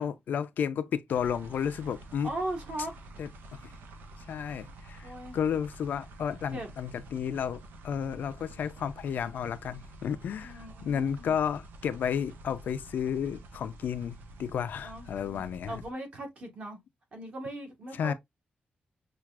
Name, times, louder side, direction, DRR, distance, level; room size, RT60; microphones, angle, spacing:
voice 1, 0.0-2.3 3.2-3.3 3.6-3.7 4.3-15.8 17.9-18.1, left 8 dB, 65° left, 0.4 m, -32 dB
sound 1, 1.1-15.9, right 1 dB, 80° right, 0.8 m, -49 dB
voice 2, 2.2-2.9 5.0-5.4 6.5-6.7 10.4-11.3 14.8-16.8 17.1-18.1, right 1 dB, 40° right, 1.4 m, -39 dB
5.9 x 2.4 x 2.3 m
wide cardioid pair, 175°, 3 cm